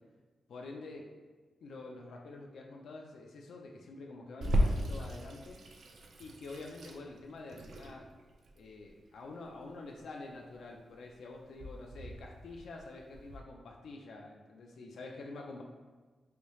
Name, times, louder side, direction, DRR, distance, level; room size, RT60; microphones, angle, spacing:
voice 1, 0.5-1.1 1.6-5.6 6.2-8.1 8.6-15.6, left 3 dB, 80° left, 1 dB, 0.3 m, -47 dB
Water tap faucet / Sink (filling or washing), 4.4-13.4, equal, 65° right, 0.3 m, -37 dB
3.2 x 2.6 x 3.0 m, 1.3 s
wide cardioid pair, 145°, 0 cm